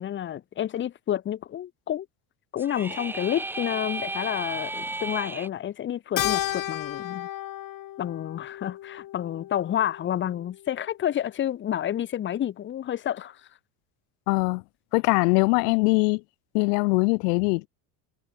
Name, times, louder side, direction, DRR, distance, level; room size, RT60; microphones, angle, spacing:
voice 1, 0.0-2.1 2.5-7.3 8.0-13.4, left 11 dB, 25° left, 0.8 m, -29 dB
sound 1, 2.6-5.5, right 2 dB, 5° right, 1.0 m, -33 dB
Keyboard (musical), 6.2-10.8, left 13 dB, 45° left, 5.0 m, -33 dB
voice 2, 14.3-14.6 14.9-16.2 16.5-17.7, left 32 dB, 80° left, 0.7 m, -22 dB
cardioid pair, 140°, 47 cm